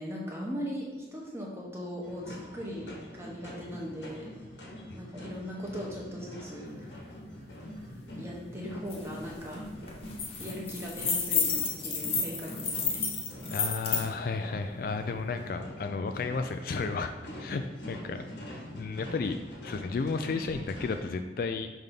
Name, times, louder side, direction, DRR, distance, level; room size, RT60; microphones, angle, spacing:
voice 1, 0.0-4.3 4.9-7.1 8.2-9.6 10.4-11.5 11.8-13.0, equal, 15° right, -3 dB, 1.1 m, -39 dB
sound 1, 2.0-21.1, left 1 dB, 80° left, 1.3 m, -44 dB
sound 2, 8.9-9.0 9.3-9.6 9.9-14.0, left 5 dB, 30° left, 0.8 m, -31 dB
voice 2, 13.5-17.1 17.4-18.2 18.7-21.7, left 4 dB, 50° left, 7 dB, 0.3 m, -33 dB
5.7 x 3.4 x 5.3 m, 1.3 s
head